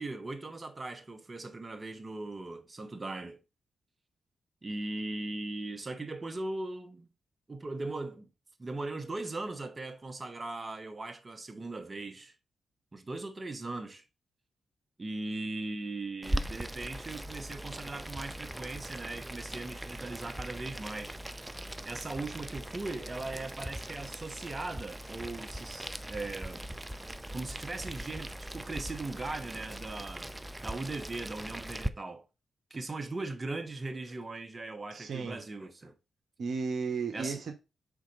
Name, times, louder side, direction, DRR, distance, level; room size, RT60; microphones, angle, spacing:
voice 1, 0.0-3.4 4.6-7.1 7.5-8.3 8.6-12.3 12.9-14.0 15.0-21.2 21.8-26.6 27.3-30.3 30.6-32.3 32.7-35.9 37.1-37.4, right 2 dB, 35° right, 1.0 m, -39 dB
Boiling, 16.2-31.9, right 1 dB, 15° right, 0.6 m, -40 dB
voice 2, 34.9-35.4 36.4-37.5, right 5 dB, 65° right, 1.0 m, -34 dB
5.0 x 3.9 x 4.9 m
supercardioid pair, 45°, 0 cm